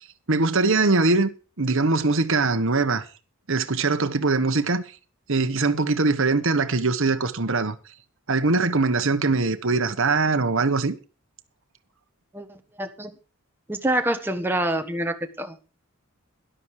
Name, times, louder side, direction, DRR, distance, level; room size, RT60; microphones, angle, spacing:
voice 1, 0.3-1.3 1.6-3.0 3.5-4.8 5.3-7.7 8.3-10.9, right 3 dB, 60° right, 1.2 m, -22 dB
voice 2, 12.3-13.1 13.7-15.6, right 1 dB, 10° right, 1.4 m, -26 dB
13.0 x 11.5 x 4.8 m
head